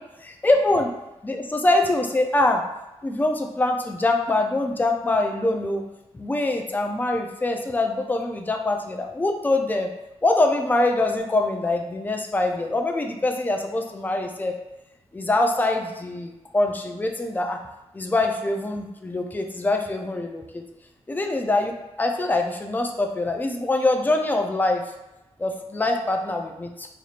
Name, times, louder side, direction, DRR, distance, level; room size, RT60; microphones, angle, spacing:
voice 1, 0.2-0.9 1.2-2.6 3.0-5.9 6.1-9.9 10.2-14.5 15.1-17.6 17.9-20.6 21.1-24.8 25.4-26.9, left 2 dB, 15° left, 3 dB, 0.4 m, -24 dB
4.1 x 3.0 x 2.4 m, 0.94 s
wide cardioid pair, 125°, 11 cm